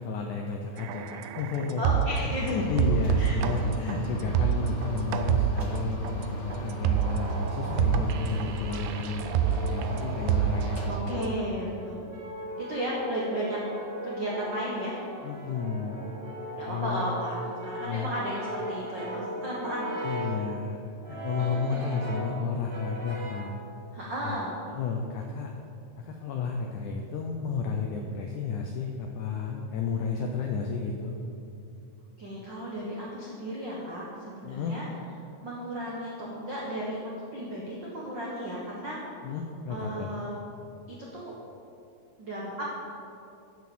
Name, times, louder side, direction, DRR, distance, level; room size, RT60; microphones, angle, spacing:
voice 1, 0.0-9.2 9.7-11.3 15.2-16.0 16.6-17.0 17.8-18.1 20.0-23.6 24.2-24.4 24.7-25.5 26.0-31.2 34.4-34.7 39.2-40.1, left 5 dB, 85° left, 2 dB, 1.7 m, -32 dB
sound 1, 0.8-2.4 2.8-11.3, right 9 dB, 85° right, 2.6 m, -28 dB
voice 2, 1.8-2.7 3.2-3.4 4.5-4.7 10.9-11.9 12.6-13.6 14.0-15.0 16.6-20.0 21.4-21.9 23.9-24.5 32.2-34.9 35.4-37.0 37.3-39.0 39.7-40.4 40.9-41.3 42.2-42.8, equal, 70° right, -5 dB, 1.0 m, -34 dB
sound 2, 2.3-10.9, equal, 65° left, 1.0 m, -37 dB
Brass instrument, 6.4-8.3 9.0-11.1 11.8-20.4 21.0-22.4 22.7-23.5, right 1 dB, 55° right, 0.5 m, -39 dB
10.5 x 6.4 x 7.2 m, 2.6 s
omnidirectional pair, 4.5 m